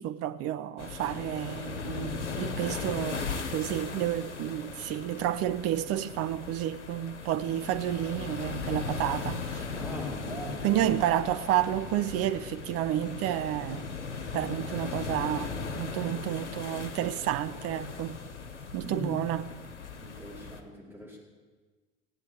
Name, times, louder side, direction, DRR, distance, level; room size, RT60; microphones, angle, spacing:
voice 1, 0.0-9.6 10.6-13.9 14.3-18.2 18.7-19.4, right 12 dB, 45° right, 0.8 m, -30 dB
sound 1, 0.8-20.6, left 5 dB, 80° left, 1.2 m, -38 dB
voice 2, 9.7-10.9 18.8-19.1 20.0-21.2, equal, 5° right, 4.6 m, -39 dB
17.0 x 8.7 x 6.5 m
figure-of-eight pair, 70°, 35 cm